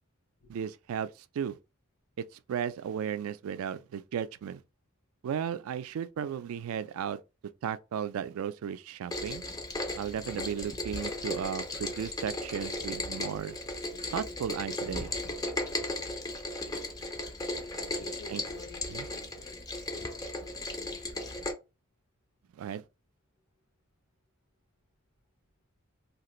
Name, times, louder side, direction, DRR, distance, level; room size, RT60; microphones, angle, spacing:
voice 1, 0.5-1.6 2.2-4.6 5.2-7.2 7.6-9.4 10.0-13.6 14.1-15.1 18.3-18.4 18.9-19.1 22.6-22.8, right 8 dB, 75° right, 0.3 m, -35 dB
Rain, 9.1-21.5, left 2 dB, 15° left, 0.4 m, -36 dB
voice 2, 17.9-20.1, left 2 dB, 70° left, 0.9 m, -50 dB
2.8 x 2.4 x 3.0 m
head